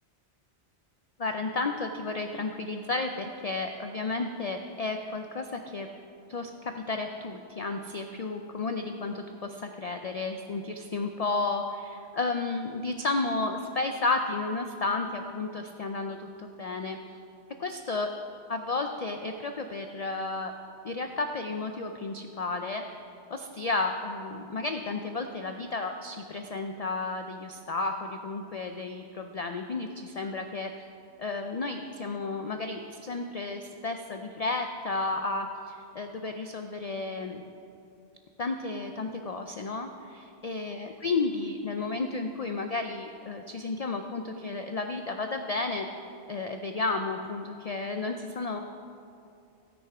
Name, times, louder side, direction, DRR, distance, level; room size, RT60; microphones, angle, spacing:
voice 1, 1.2-5.9 6.3-17.2 17.6-18.1 18.5-20.5 20.8-22.8 23.3-30.7 31.2-37.4 38.4-45.9 46.3-48.6, left 3 dB, 50° left, 5 dB, 0.4 m, -32 dB
16.0 x 6.7 x 4.8 m, 2.6 s
omnidirectional pair, 1.2 m